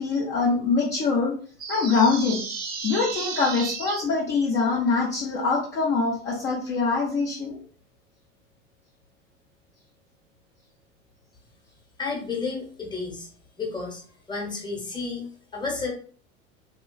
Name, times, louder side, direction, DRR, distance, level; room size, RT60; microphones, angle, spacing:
voice 1, 0.0-1.3 1.7-2.4 2.8-7.6, left 4 dB, 25° left, -5 dB, 0.7 m, -24 dB
sound 1, 1.6-4.0, right 5 dB, 25° right, 0.6 m, -33 dB
voice 2, 12.0-13.3 13.6-14.0 14.3-15.9, left 4 dB, 10° left, -2 dB, 1.1 m, -31 dB
3.1 x 2.3 x 2.3 m, 0.43 s
figure-of-eight pair, 80°, 39 cm